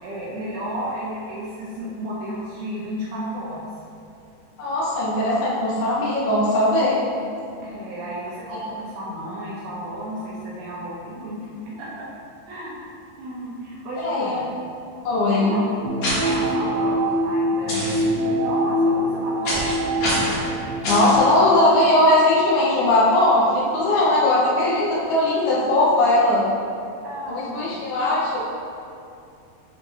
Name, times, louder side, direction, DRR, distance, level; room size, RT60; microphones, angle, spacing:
voice 1, 0.0-3.7 7.6-12.1 12.5-12.8 13.2-14.5 15.3-15.6 16.2-19.8 27.0-27.8, equal, 75° right, -8 dB, 2.8 m, -32 dB
voice 2, 4.6-7.0 14.0-14.4 15.0-15.5 20.9-26.4 27.3-28.4, left 1 dB, 70° left, -7 dB, 3.2 m, -19 dB
sound 1, 15.8-21.2, equal, 90° right, 2.0 m, -24 dB
sound 2, 16.0-16.3 17.7-18.0 19.4-19.7 20.0-20.4 20.8-21.2, left 1 dB, 55° left, 2.1 m, -25 dB
9.7 x 4.5 x 2.8 m, 2.5 s
omnidirectional pair, 4.8 m